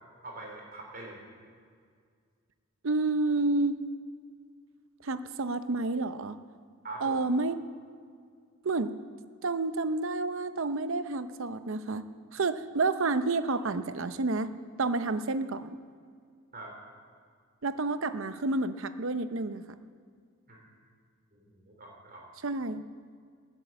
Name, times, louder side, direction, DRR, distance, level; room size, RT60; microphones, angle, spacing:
voice 1, 0.2-1.2 6.8-7.2 16.5-16.7 20.5-20.6 21.3-22.2, right 2 dB, 45° right, 0 dB, 3.6 m, -43 dB
voice 2, 2.8-3.8 5.0-6.4 7.0-7.6 8.6-8.9 9.4-12.0 12.3-14.5 14.8-15.8 17.6-19.7 22.4-22.8, right 3 dB, 65° right, 12 dB, 0.7 m, -29 dB
13.5 x 9.9 x 9.3 m, 2.1 s
head